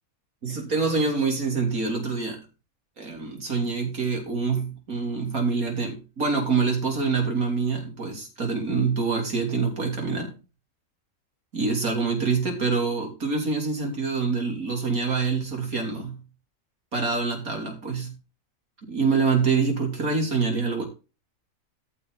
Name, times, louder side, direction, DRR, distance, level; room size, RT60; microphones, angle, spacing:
voice 1, 0.4-2.4 3.0-10.3 11.5-16.2 16.9-18.1 18.8-20.8, right 4 dB, 80° right, 2 dB, 4.0 m, -26 dB
14.5 x 7.0 x 4.1 m, 0.31 s
omnidirectional pair, 1.5 m